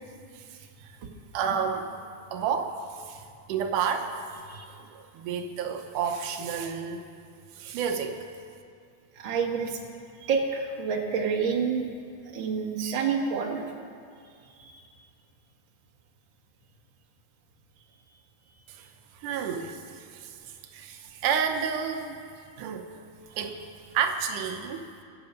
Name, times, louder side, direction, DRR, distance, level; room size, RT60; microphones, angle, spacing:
voice 1, 1.3-2.0 2.3-2.7 3.1-3.2 3.5-4.1 4.8-7.0 7.6-8.2 18.8-18.9 19.2-19.8 20.2-20.3 20.7-22.2 22.6-23.0 23.3-23.7 23.9-24.9, right 7 dB, 90° right, 5 dB, 2.4 m, -30 dB
voice 2, 9.2-9.8 10.2-11.9 12.3-13.7 14.6-14.8, right 5 dB, 45° right, 0 dB, 1.9 m, -28 dB
24.0 x 8.1 x 5.3 m, 2.3 s
omnidirectional pair, 3.5 m